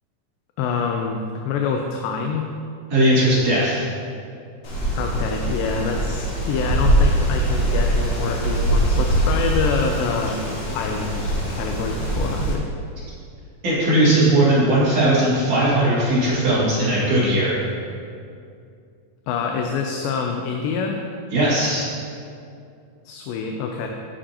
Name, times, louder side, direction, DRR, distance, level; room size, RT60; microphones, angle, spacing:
voice 1, 0.6-2.5 5.0-10.4 10.7-12.7 19.3-21.0 23.1-23.9, left 5 dB, 90° left, 2 dB, 2.3 m, -26 dB
voice 2, 2.9-3.8 13.6-17.6 21.3-21.9, right 1 dB, 50° right, -9 dB, 3.0 m, -18 dB
Wind, 4.6-12.5, right 1 dB, 70° left, 3.3 m, -22 dB
13.0 x 5.1 x 2.8 m, 2.4 s
omnidirectional pair, 3.9 m